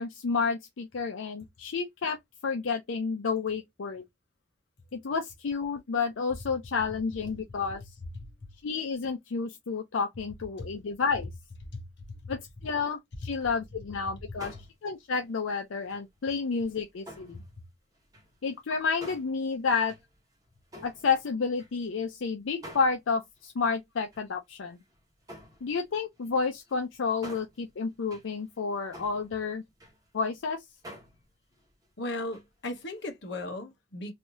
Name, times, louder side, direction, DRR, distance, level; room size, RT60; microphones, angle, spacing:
voice 1, 0.0-2.2 2.4-4.0 4.9-7.8 8.6-11.3 12.3-14.5 14.8-17.4 18.4-19.9 20.8-24.8 25.6-29.6 30.1-30.6, left 5 dB, 85° left, 0.5 m, -30 dB
voice 2, 8.0-8.5 10.6-10.7 11.7-12.4 17.3-17.4 32.0-34.1, left 2 dB, 60° left, 1.0 m, -37 dB
sound 1, 14.4-15.5 15.8-17.6 17.9-22.2 22.6-23.5 24.0-30.4 30.8-32.5 32.8-33.1 33.4-33.5, equal, 20° right, 1.1 m, -50 dB
3.3 x 2.6 x 2.8 m
head